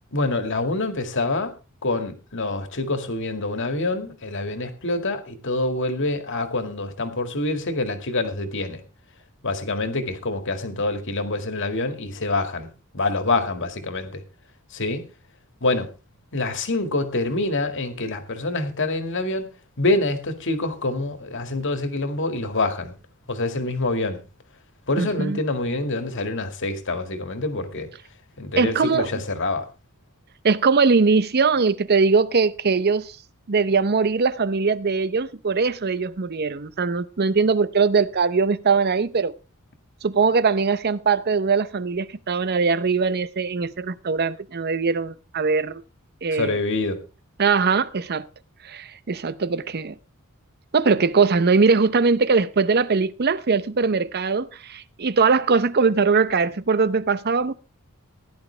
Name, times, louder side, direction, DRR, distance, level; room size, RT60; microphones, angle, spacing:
voice 1, 0.1-1.5 1.8-8.8 9.4-14.2 14.7-15.0 15.6-15.9 16.3-19.5 19.8-22.9 23.3-24.2 24.9-27.9 28.4-29.6 46.3-47.0, left 2 dB, 60° left, 2.1 m, -26 dB
voice 2, 25.0-25.4 28.6-29.1 30.4-33.1 33.5-39.4 40.0-45.8 46.2-46.5 47.4-48.3 48.6-49.9 50.7-57.5, right 4 dB, 50° right, 0.7 m, -21 dB
16.0 x 11.0 x 3.4 m
head